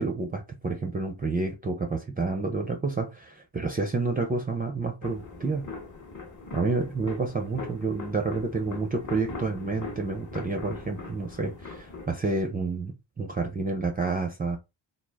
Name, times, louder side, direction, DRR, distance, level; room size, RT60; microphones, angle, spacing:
voice 1, 0.0-5.7 6.5-14.6, right 3 dB, 20° right, 0.4 m, -29 dB
sound 1, 5.0-12.1, left 4 dB, 35° left, 1.0 m, -41 dB
2.1 x 2.0 x 3.3 m
supercardioid pair, 60°, 49 cm